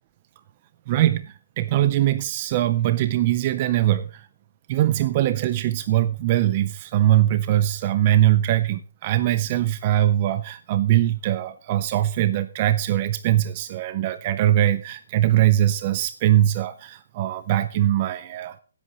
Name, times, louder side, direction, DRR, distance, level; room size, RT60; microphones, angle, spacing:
voice 1, 0.9-4.3 4.7-18.6, right 13 dB, 25° right, 13 dB, 0.5 m, -21 dB
16.0 x 8.2 x 4.0 m, 0.36 s
hypercardioid pair, 170°, 0 cm